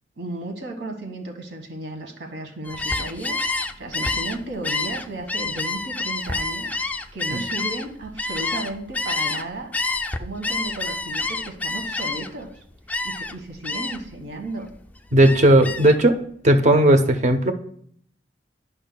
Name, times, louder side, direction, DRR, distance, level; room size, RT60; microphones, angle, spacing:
voice 1, 0.2-9.7 10.2-12.5 13.0-14.7, right 2 dB, 85° right, 3 dB, 1.4 m, -34 dB
Gull seagull, 2.6-9.4 9.7-12.4 12.9-13.3 13.6-14.1 14.5-16.0, left 3 dB, 10° left, 0.3 m, -28 dB
voice 2, 15.1-16.2 16.4-17.5, right 1 dB, 40° right, 7 dB, 0.7 m, -16 dB
12.0 x 5.4 x 2.2 m, 0.64 s
head